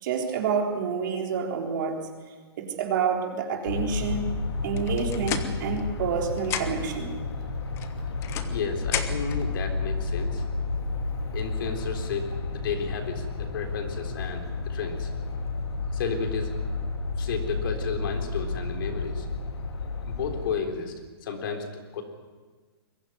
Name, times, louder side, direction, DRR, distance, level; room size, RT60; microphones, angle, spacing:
voice 1, 0.0-2.0 2.6-4.3 4.6-7.1, right 6 dB, 50° right, 1 dB, 3.8 m, -28 dB
sound 1, 3.7-20.5, left 3 dB, 85° left, 2.6 m, -31 dB
sound 2, 4.8-6.1 6.4-7.0 7.8-9.4, left 9 dB, 20° left, 1.2 m, -34 dB
voice 2, 8.4-10.4 11.3-12.3 12.5-15.1 15.9-16.5 17.2-19.3 20.0-20.9 21.2-22.0, left 6 dB, 60° left, 4 dB, 3.8 m, -32 dB
22.5 x 15.5 x 9.4 m, 1.4 s
hypercardioid pair, 160°, 13 cm